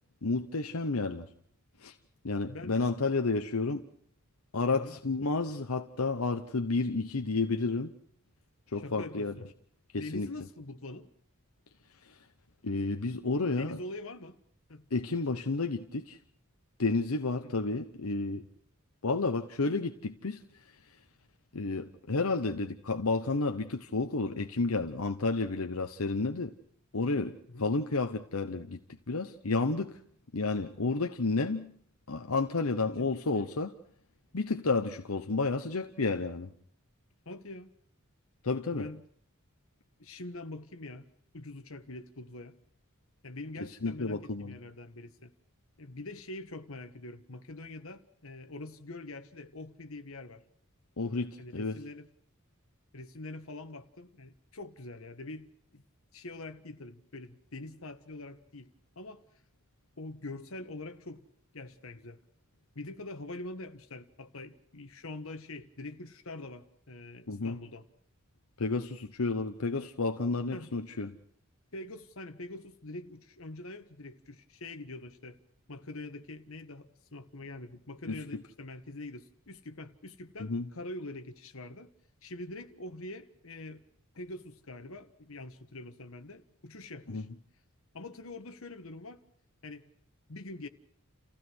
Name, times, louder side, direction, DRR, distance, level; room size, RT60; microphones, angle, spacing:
voice 1, 0.2-1.3 1.8-1.9 2.2-3.9 4.5-7.9 8.7-9.3 9.9-10.3 12.1-12.2 12.6-13.8 14.9-16.2 16.8-18.5 19.0-20.4 21.5-26.5 26.9-28.8 29.1-30.0 30.3-31.7 32.1-33.7 34.3-36.5 38.4-38.9 43.8-44.6 51.0-51.8 67.3-67.6 68.6-71.2 78.1-78.2 80.4-80.6 87.1-87.2, left 3 dB, 85° left, 1.0 m, -31 dB
voice 2, 2.5-2.8 4.7-5.0 8.7-9.5 10.0-11.1 13.5-14.4 14.7-14.9 17.4-17.5 27.5-27.7 33.0-33.5 37.2-37.7 38.7-39.0 40.0-41.1 41.3-42.6 43.2-45.3 45.8-50.4 51.4-52.1 52.9-55.8 56.1-59.2 60.0-61.3 61.5-62.2 62.7-67.9 70.5-70.7 71.7-75.4 75.7-81.9 82.2-83.8 84.1-87.3 87.9-89.2 89.6-89.9 90.3-90.7, left 2 dB, 70° left, 1.5 m, -44 dB
29.5 x 16.0 x 6.3 m
head